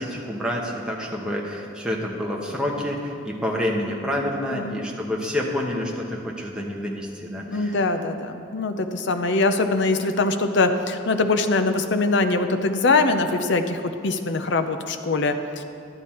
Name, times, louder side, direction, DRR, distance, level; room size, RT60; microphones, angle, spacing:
voice 1, 0.0-7.8, left 1 dB, 5° right, -2 dB, 1.0 m, -28 dB
voice 2, 4.2-4.8 7.5-15.6, left 3 dB, 60° left, 8 dB, 0.6 m, -23 dB
12.0 x 9.2 x 4.3 m, 2.5 s
head